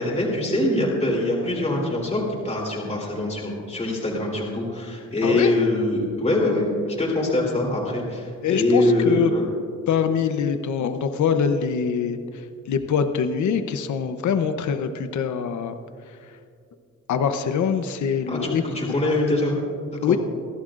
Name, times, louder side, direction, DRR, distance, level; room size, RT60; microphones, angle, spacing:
voice 1, 0.0-9.5 18.3-19.5 20.1-20.2, left 1 dB, 20° left, -4 dB, 3.4 m, -23 dB
voice 2, 5.2-5.5 8.4-9.3 9.9-15.8 16.1-16.4 17.1-18.6 20.0-20.2, left 7 dB, 60° left, 8 dB, 0.8 m, -24 dB
28.5 x 11.5 x 2.5 m, 2.3 s
cardioid pair, 120°, 33 cm